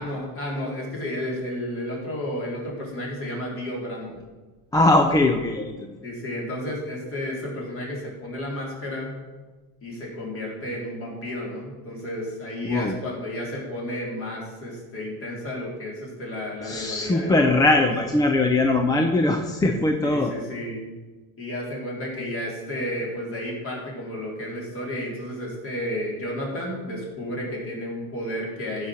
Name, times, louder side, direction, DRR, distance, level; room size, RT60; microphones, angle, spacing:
voice 1, 0.0-4.2 6.0-9.1 9.8-17.9 19.7-20.9 21.4-28.9, left 1 dB, 30° left, -2 dB, 3.9 m, -32 dB
voice 2, 4.7-6.0 12.6-13.0 16.6-20.3, left 2 dB, 10° left, 4 dB, 0.5 m, -21 dB
14.5 x 5.8 x 6.3 m, 1.3 s
cardioid pair, 160°, 41 cm